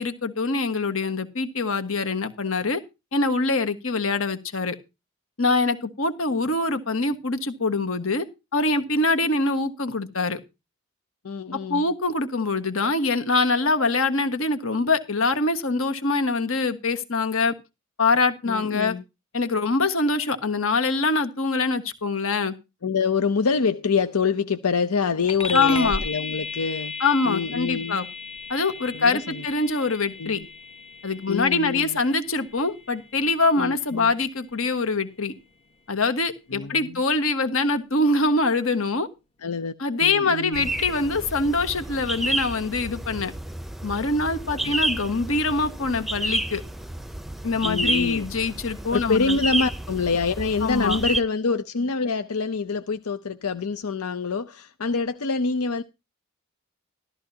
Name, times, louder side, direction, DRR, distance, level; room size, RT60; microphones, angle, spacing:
voice 1, 0.0-2.8 3.1-4.8 5.4-8.2 8.5-10.4 11.5-17.5 18.0-18.9 19.3-22.5 25.5-26.0 27.0-28.1 28.5-30.4 31.0-35.3 35.9-39.1 39.8-43.3 43.8-46.6 47.4-49.4 50.6-51.0, left 3 dB, 70° left, 1.6 m, -24 dB
voice 2, 11.2-11.8 18.5-19.0 22.8-26.9 27.3-28.0 28.9-29.4 30.2-30.5 31.3-32.0 33.6-34.1 36.5-37.0 39.4-39.7 40.0-40.7 44.5-44.8 47.6-48.3 48.9-55.8, left 4 dB, 85° left, 0.7 m, -26 dB
sound 1, 25.3-35.1, left 4 dB, 25° left, 1.0 m, -36 dB
sound 2, 40.5-51.2, right 1 dB, ahead, 0.6 m, -30 dB
14.0 x 13.5 x 2.8 m
head